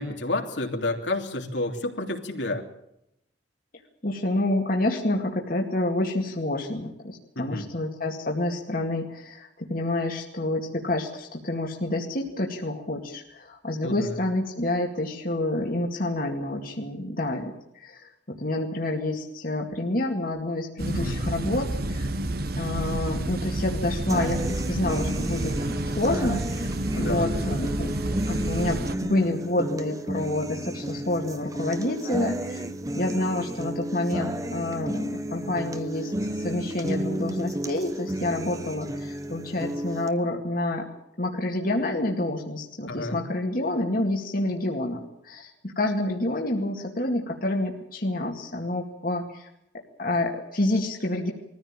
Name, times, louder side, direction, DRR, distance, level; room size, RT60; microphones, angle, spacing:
voice 1, 0.0-2.6 7.3-7.7 13.8-14.2 20.9-21.2 27.0-27.4 42.9-43.2, left 2 dB, 75° left, 2 dB, 3.1 m, -30 dB
voice 2, 4.0-17.5 17.8-22.1 22.6-26.7 27.0-28.0 28.3-32.6 32.9-40.9 41.2-49.5 50.0-51.3, left 1 dB, 50° left, 1 dB, 2.2 m, -28 dB
sound 1, 20.8-29.0, right 1 dB, 55° right, 1.2 m, -29 dB
sound 2, 24.1-40.1, right 1 dB, 20° right, 1.2 m, -32 dB
22.0 x 15.0 x 8.9 m, 0.81 s
head